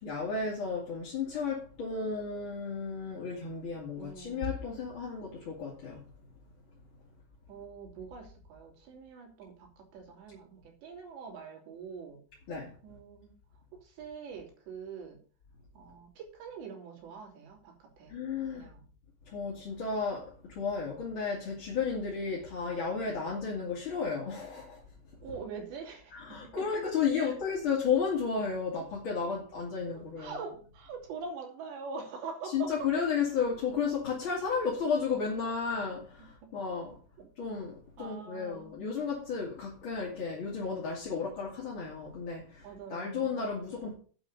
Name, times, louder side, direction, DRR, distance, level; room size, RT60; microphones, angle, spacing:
voice 1, 0.0-6.0 12.5-12.7 18.1-18.7 19.3-24.8 26.1-30.4 32.5-37.0 37.4-43.9, left 5 dB, 35° left, 2.7 m, -33 dB
voice 2, 3.9-4.5 7.5-12.2 12.8-13.4 13.7-15.2 15.8-18.2 18.5-18.8 25.2-26.6 27.2-27.5 30.2-32.9 36.4-36.5 37.2-37.3 38.0-38.8 42.6-43.4, right 5 dB, 80° right, 5.0 m, -44 dB
8.9 x 7.3 x 6.8 m
omnidirectional pair, 5.0 m